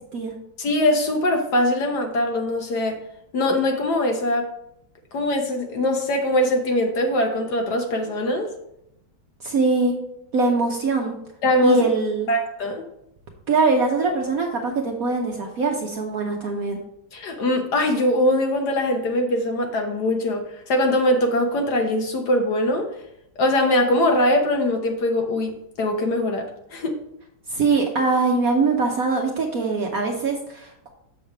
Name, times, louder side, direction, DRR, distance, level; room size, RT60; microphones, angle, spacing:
voice 1, 0.6-3.0 3.3-4.5 5.1-8.5 11.4-11.8 12.3-12.8 17.1-22.9 23.4-26.4 26.7-26.9, left 1 dB, 60° left, 3 dB, 1.4 m, -22 dB
voice 2, 9.4-10.0 10.3-11.1 11.6-12.3 13.5-16.8 27.5-30.9, right 3 dB, 55° right, 1 dB, 1.1 m, -22 dB
7.0 x 6.6 x 3.4 m, 0.79 s
omnidirectional pair, 2.2 m